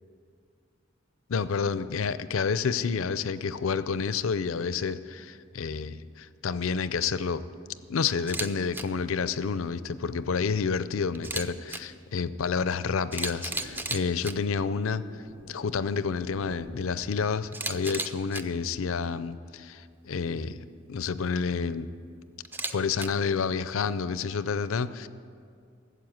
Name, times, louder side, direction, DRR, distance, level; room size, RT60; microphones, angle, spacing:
voice 1, 1.3-7.4 7.9-15.0 15.5-20.6 20.9-21.9 22.7-25.1, left 5 dB, 80° left, 14 dB, 0.5 m, -29 dB
sound 1, 5.5-5.6 6.6-8.1 8.6-9.8 10.5-12.9 13.2-19.7, equal, 80° right, 1.3 m, -53 dB
Camera, 8.2-8.5 8.7-8.8 11.1-11.8 12.7-12.8 13.1-14.3 17.5-18.4 22.4-23.1, right 2 dB, 10° right, 0.4 m, -33 dB
13.5 x 7.9 x 7.8 m, 2.3 s
head